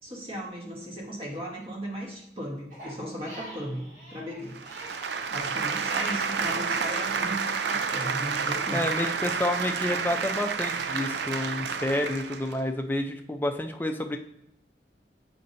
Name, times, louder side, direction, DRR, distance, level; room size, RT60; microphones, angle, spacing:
voice 1, 0.0-4.6 5.3-8.9, equal, 30° right, -1 dB, 1.3 m, -36 dB
Crying sobbing, 2.7-6.6 7.0-8.0, equal, 50° right, 2.2 m, -45 dB
sound 1, 4.5-12.6, right 5 dB, 80° right, 0.4 m, -30 dB
voice 2, 8.7-14.2, left 1 dB, 10° left, 4 dB, 0.4 m, -29 dB
7.0 x 5.2 x 2.6 m, 0.77 s
head